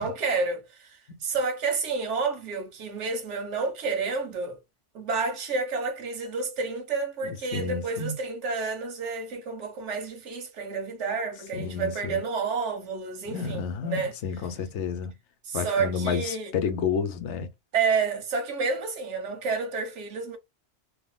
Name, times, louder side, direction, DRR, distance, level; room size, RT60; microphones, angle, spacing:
voice 1, 0.0-4.6 4.9-14.1 15.4-16.5 17.7-20.4, right 4 dB, 80° right, 1.2 m, -30 dB
voice 2, 7.2-8.1 11.5-12.2 13.3-15.1 15.5-17.5, left 6 dB, 80° left, 0.9 m, -30 dB
3.5 x 2.2 x 2.2 m
omnidirectional pair, 1.2 m